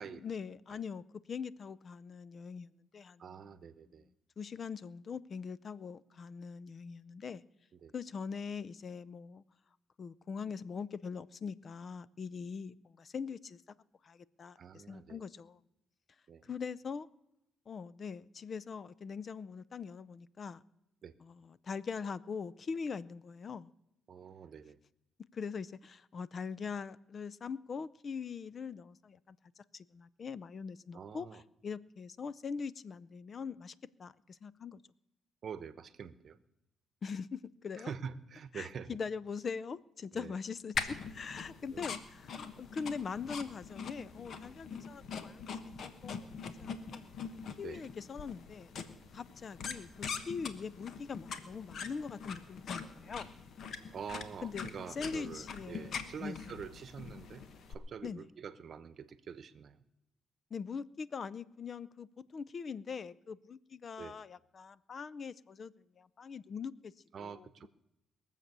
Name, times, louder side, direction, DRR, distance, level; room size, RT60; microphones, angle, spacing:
voice 1, 0.1-3.2 4.4-7.4 7.9-9.4 10.0-13.6 14.0-15.6 16.4-17.1 17.7-20.6 21.2-23.7 25.3-33.7 34.0-34.8 37.0-37.9 38.5-46.2 46.6-47.0 47.6-48.7 49.1-53.3 54.4-56.4 58.0-58.2 60.5-66.9 67.2-67.5, left 5 dB, 45° left, 18 dB, 0.5 m, -42 dB
voice 2, 3.2-4.1 7.7-7.9 14.6-15.2 16.3-16.5 21.0-21.1 24.1-24.8 30.9-31.4 35.4-36.4 37.8-39.0 40.1-40.4 41.7-42.0 47.6-47.9 53.9-57.4 57.7-59.8 64.0-64.2 67.1-67.7, right 7 dB, 55° right, 15 dB, 0.9 m, -46 dB
sound 1, 40.7-57.7, left 5 dB, 60° left, 1.3 m, -43 dB
21.5 x 7.4 x 6.7 m, 0.86 s
cardioid pair, 90°, 0 cm